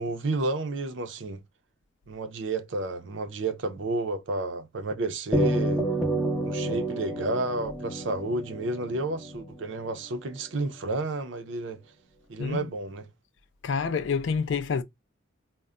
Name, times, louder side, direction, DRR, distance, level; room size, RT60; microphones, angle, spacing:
voice 1, 0.0-1.4 2.1-5.8 6.5-11.8 12.3-13.1, right 2 dB, 65° right, 0.5 m, -31 dB
sound 1, 5.3-9.9, right 1 dB, 5° left, 0.8 m, -29 dB
voice 2, 13.6-14.8, left 5 dB, 65° left, 0.4 m, -27 dB
2.2 x 2.1 x 3.6 m
head